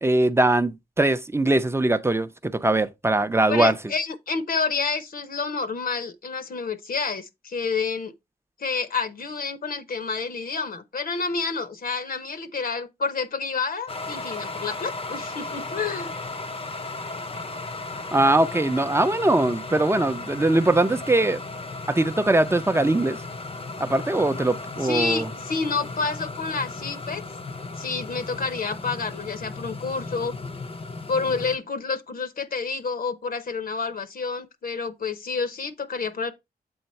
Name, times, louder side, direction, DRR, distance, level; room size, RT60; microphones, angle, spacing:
voice 1, 0.0-3.8 18.1-21.4 21.9-23.2 23.8-25.3, right 2 dB, 15° right, 0.5 m, -21 dB
voice 2, 3.5-8.1 8.6-16.1 24.8-27.2 27.8-30.4 31.1-36.3, left 4 dB, 65° left, 0.9 m, -29 dB
sound 1, 13.9-31.6, left 3 dB, 35° left, 0.7 m, -35 dB
7.9 x 3.8 x 4.3 m
wide cardioid pair, 85°, 16 cm